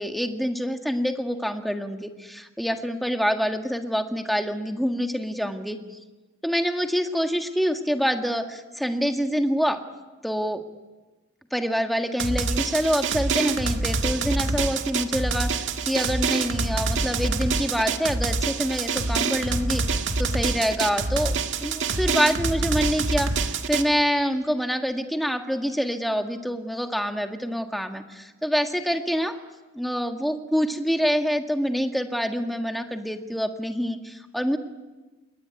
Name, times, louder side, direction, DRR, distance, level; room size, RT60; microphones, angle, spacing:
voice 1, 0.0-5.8 6.4-9.8 10.2-10.6 11.5-29.4 29.7-34.6, equal, ahead, 5 dB, 1.8 m, -26 dB
Drum, 12.2-23.8, right 4 dB, 55° right, 1.9 m, -26 dB
27.5 x 22.0 x 9.5 m, 1.2 s
head